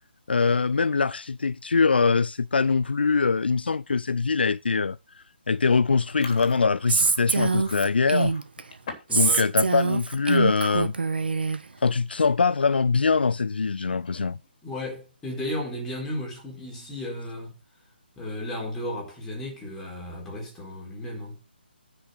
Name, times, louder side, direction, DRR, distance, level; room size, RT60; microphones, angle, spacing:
voice 1, 0.3-8.3 9.1-10.9 11.8-14.4, left 4 dB, 65° left, 0.5 m, -23 dB
Chewing mastication, 6.0-9.2 9.5-9.9 10.3-10.5 11.3-11.4 11.6-11.9 12.4-12.5 13.9-14.5, left 4 dB, 40° left, 3.3 m, -43 dB
Female speech woman speaking, 6.9-8.6 9.1-11.6, right 4 dB, 65° right, 1.3 m, -24 dB
voice 2, 9.1-9.5 14.3-14.4 14.6-17.6 18.2-21.4, left 1 dB, 10° left, 4.5 m, -34 dB
10.0 x 6.1 x 6.6 m
figure-of-eight pair, 145°, 6 cm